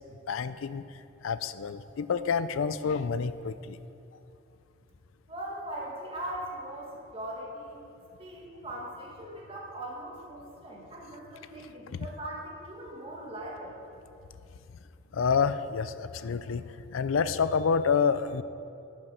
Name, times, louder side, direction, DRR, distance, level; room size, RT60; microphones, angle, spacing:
voice 1, 0.3-0.8 1.2-3.8 11.9-12.1 15.1-18.4, left 6 dB, 80° left, 14 dB, 0.4 m, -28 dB
voice 2, 5.3-7.8 8.2-13.8, right 1 dB, 30° right, -3 dB, 2.0 m, -40 dB
10.0 x 7.0 x 6.6 m, 2.7 s
head